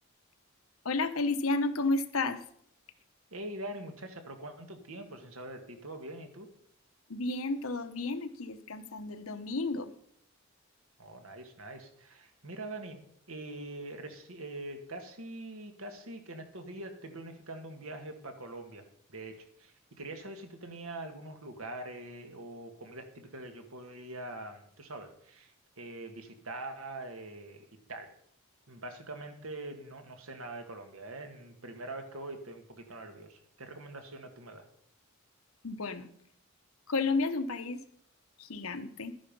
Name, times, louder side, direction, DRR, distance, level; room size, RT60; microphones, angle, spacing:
voice 1, 0.8-2.4 7.1-9.9 35.6-36.1 36.9-37.8 38.4-39.1, left 3 dB, 85° left, 9 dB, 1.1 m, -32 dB
voice 2, 3.3-6.5 11.0-18.8 19.1-28.1 28.7-34.7, right 2 dB, 85° right, 6 dB, 1.9 m, -44 dB
12.0 x 9.9 x 5.4 m, 0.66 s
head